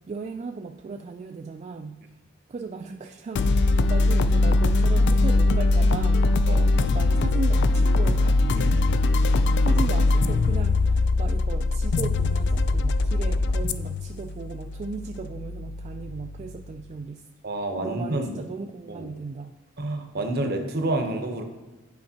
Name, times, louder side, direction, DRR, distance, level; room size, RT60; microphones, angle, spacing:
voice 1, 0.0-2.0 2.5-8.5 9.2-17.2 17.8-19.6, right 4 dB, 35° right, 4 dB, 0.3 m, -36 dB
sound 1, 3.3-16.7, left 2 dB, 60° left, 0.3 m, -22 dB
voice 2, 8.5-8.8 17.4-18.4 18.9-19.1 19.8-21.4, right 1 dB, 55° right, 5 dB, 0.8 m, -29 dB
10.5 x 4.5 x 2.8 m, 1.2 s
head